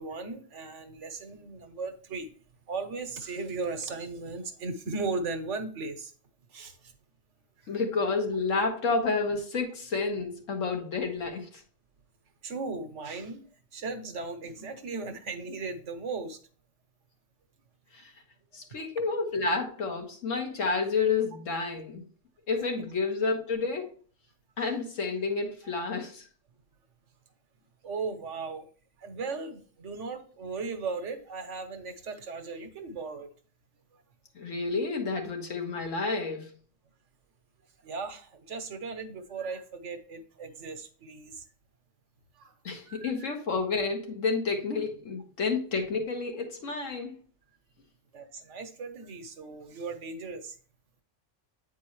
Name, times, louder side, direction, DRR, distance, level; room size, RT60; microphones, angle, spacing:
voice 1, 0.0-2.3 2.7-6.1 6.5-6.9 12.4-13.4 13.7-16.4 22.8-22.9 27.8-28.7 29.0-33.3 37.8-41.4 42.4-42.5 42.9-43.3 48.1-50.5, right 4 dB, 70° right, 1.2 m, -37 dB
voice 2, 7.7-11.6 17.9-18.1 18.5-22.1 22.5-23.9 24.6-26.3 34.3-36.5 42.6-47.2, left 4 dB, 85° left, 1.6 m, -30 dB
8.4 x 4.6 x 3.1 m
omnidirectional pair, 1.3 m